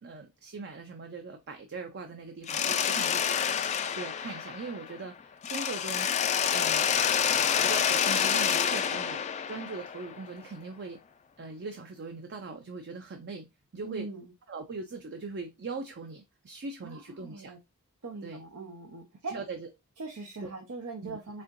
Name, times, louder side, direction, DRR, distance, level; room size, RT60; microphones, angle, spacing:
voice 1, 0.0-3.4 3.8-6.1 6.5-6.9 7.6-9.2 9.5-11.0 11.4-13.5 13.7-14.1 14.5-17.5 18.2-18.4 19.3-19.7 20.4-20.5 21.0-21.2, right 3 dB, 50° right, 5 dB, 0.5 m, -40 dB
Mechanisms, 2.5-5.1 5.4-10.3, left 8 dB, 30° left, 0.3 m, -28 dB
voice 2, 13.8-14.3 16.8-17.6 18.0-19.3 20.0-21.4, right 3 dB, 90° right, 2 dB, 0.8 m, -41 dB
4.2 x 3.5 x 2.5 m, 0.23 s
head